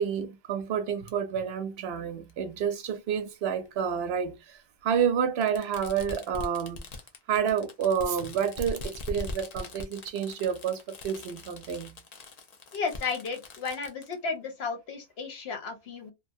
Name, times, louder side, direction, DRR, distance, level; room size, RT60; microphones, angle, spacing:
voice 1, 0.0-6.9 7.3-12.0, right 7 dB, 65° right, 0.8 m, -29 dB
Fireworks, 1.1-1.2 2.3-2.4 3.7-3.8 5.4-14.1, left 2 dB, 50° left, 0.5 m, -41 dB
voice 2, 12.7-16.1, left 5 dB, 65° left, 1.0 m, -33 dB
2.5 x 2.2 x 2.5 m
omnidirectional pair, 1.2 m